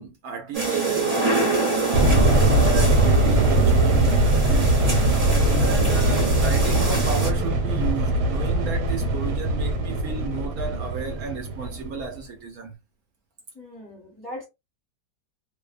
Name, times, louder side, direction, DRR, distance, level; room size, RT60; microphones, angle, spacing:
voice 1, 0.0-4.7 5.5-12.8, right 5 dB, 70° right, 1.0 m, -34 dB
sound 1, 0.5-7.3, right 3 dB, 35° right, 1.0 m, -26 dB
sound 2, 1.9-12.1, right 1 dB, 85° right, 1.3 m, -21 dB
voice 2, 13.5-14.5, left 1 dB, 20° left, 0.7 m, -39 dB
2.6 x 2.1 x 2.4 m
omnidirectional pair, 1.8 m